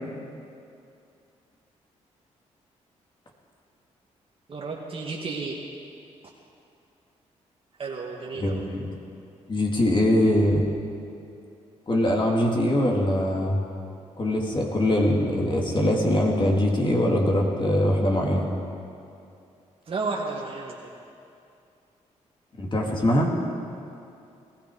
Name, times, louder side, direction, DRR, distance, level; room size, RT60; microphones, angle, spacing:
voice 1, 4.5-5.6 7.8-8.6 19.9-21.0, right 4 dB, 50° right, -2 dB, 1.7 m, -32 dB
voice 2, 8.3-8.9 9.5-10.7 11.9-13.6 14.2-18.5 22.6-23.3, left 1 dB, 40° left, -1 dB, 2.6 m, -22 dB
19.0 x 13.0 x 4.9 m, 2.6 s
cardioid pair, 70°, 13 cm